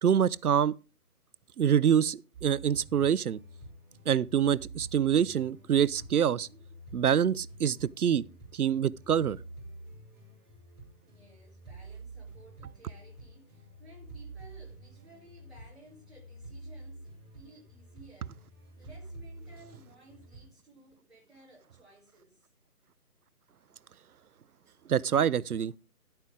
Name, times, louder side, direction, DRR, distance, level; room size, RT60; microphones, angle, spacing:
voice 1, 0.0-0.7 1.6-3.4 4.1-6.5 6.9-8.2 8.5-9.4 24.9-25.7, right 8 dB, 70° right, 0.6 m, -25 dB
sound 1, 2.3-20.5, right 2 dB, 25° right, 5.2 m, -48 dB
voice 2, 10.9-18.3 18.8-22.5, right 2 dB, ahead, 1.2 m, -57 dB
12.0 x 8.9 x 3.6 m
hypercardioid pair, 165°, 47 cm